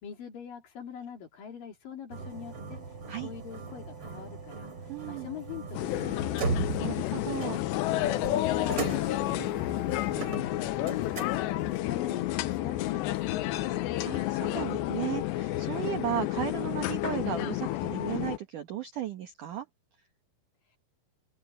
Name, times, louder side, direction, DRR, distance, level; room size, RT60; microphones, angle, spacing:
voice 1, 0.0-2.8 3.2-4.7 5.1-6.6 8.2-10.5 10.7-14.0, left 8 dB, 50° left, 3.6 m, -43 dB
sound 1, 2.1-11.8, right 4 dB, 30° right, 3.7 m, -38 dB
voice 2, 4.9-5.3 6.8-7.6 9.4-9.5 14.0-19.7, right 11 dB, 85° right, 1.8 m, -35 dB
sound 2, 5.7-18.4, left 15 dB, 75° left, 2.7 m, -30 dB
open air
omnidirectional pair, 5.9 m